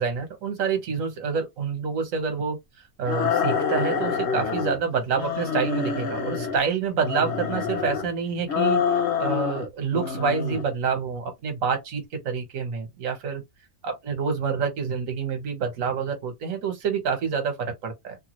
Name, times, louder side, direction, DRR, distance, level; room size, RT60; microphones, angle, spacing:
voice 1, 0.0-2.6 3.0-8.8 9.2-13.4 13.8-18.2, right 5 dB, 65° right, 1.3 m, -27 dB
sound 1, 3.1-4.8 5.1-6.6 7.0-8.1 8.5-9.7 9.9-10.7, left 6 dB, 55° left, 1.0 m, -26 dB
2.9 x 2.3 x 2.9 m
omnidirectional pair, 1.6 m